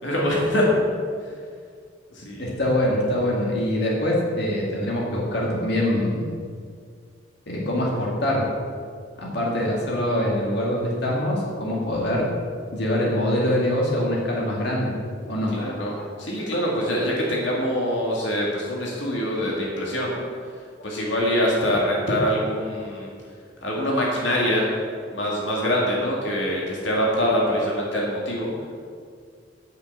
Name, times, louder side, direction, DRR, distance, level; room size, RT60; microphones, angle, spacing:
voice 1, 0.0-0.7 2.1-2.4 15.5-20.2 20.8-23.1 23.6-24.7 25.1-28.5, equal, 75° left, -3 dB, 2.2 m, -24 dB
voice 2, 2.4-6.3 7.5-8.4 9.2-12.3 12.7-14.9 15.3-15.6 15.9-16.5 20.8-20.9, left 1 dB, 60° left, -3 dB, 2.3 m, -24 dB
8.9 x 6.7 x 7.9 m, 2.1 s
head